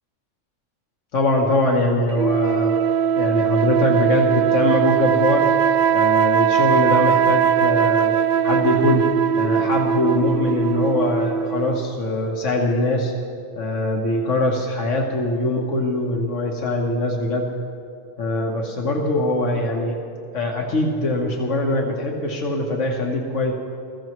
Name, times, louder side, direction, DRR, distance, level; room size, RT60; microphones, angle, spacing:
voice 1, 1.1-2.8 3.2-5.5 5.9-8.2 8.4-9.0 9.4-13.1 13.6-17.4 18.2-20.0 20.3-23.5, left 2 dB, 75° left, 1 dB, 1.5 m, -22 dB
sound 1, 2.1-11.9, right 8 dB, 65° right, 0.4 m, -20 dB
20.5 x 15.0 x 3.1 m, 2.5 s
omnidirectional pair, 1.3 m